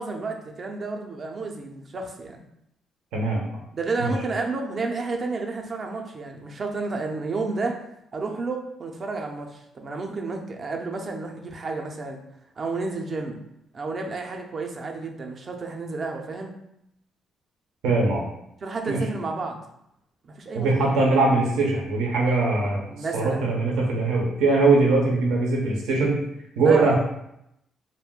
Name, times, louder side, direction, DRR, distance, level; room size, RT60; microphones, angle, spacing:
voice 1, 0.0-2.4 3.7-7.8 8.1-12.2 12.6-13.4 13.7-16.5 18.6-19.6 20.2-20.9 22.5-23.5 26.6-26.9, right 3 dB, 45° right, 2 dB, 0.5 m, -31 dB
voice 2, 3.1-3.6 4.0-4.1 17.8-18.2 18.9-19.0 20.5-22.9 23.1-26.2 26.6-27.0, right 3 dB, 90° right, -2 dB, 0.6 m, -21 dB
2.4 x 2.1 x 3.6 m, 0.79 s
cardioid pair, 90°, 0 cm